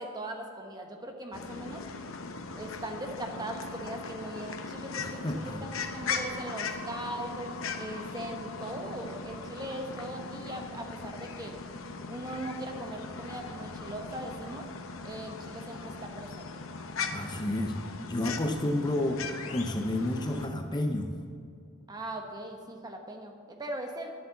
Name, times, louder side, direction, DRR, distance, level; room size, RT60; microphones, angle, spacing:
voice 1, 0.0-1.8 2.5-11.6 12.1-14.7 15.0-16.6 21.9-24.1, right 1 dB, 20° right, 3 dB, 1.1 m, -40 dB
sound 1, 1.3-20.5, left 4 dB, 65° left, 0.8 m, -39 dB
voice 2, 5.0-5.6 17.1-21.2, left 1 dB, 20° left, 5 dB, 0.7 m, -31 dB
11.0 x 7.5 x 7.1 m, 2.2 s
head